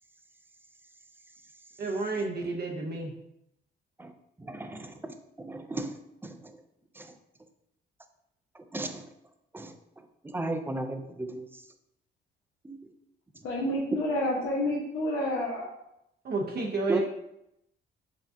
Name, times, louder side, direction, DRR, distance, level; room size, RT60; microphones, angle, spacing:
voice 1, 1.8-3.1 16.2-17.0, right 3 dB, 55° right, 0 dB, 0.7 m, -30 dB
voice 2, 4.4-6.0 6.2-6.5 7.0-7.1 8.7-9.1 9.5-9.7 10.2-11.6 12.6-12.8 16.9-17.0, right 2 dB, 10° right, 7 dB, 0.4 m, -35 dB
voice 3, 13.4-15.7, left 1 dB, 80° left, -6 dB, 0.9 m, -29 dB
5.9 x 2.3 x 2.6 m, 0.82 s
cardioid pair, 90°, 20 cm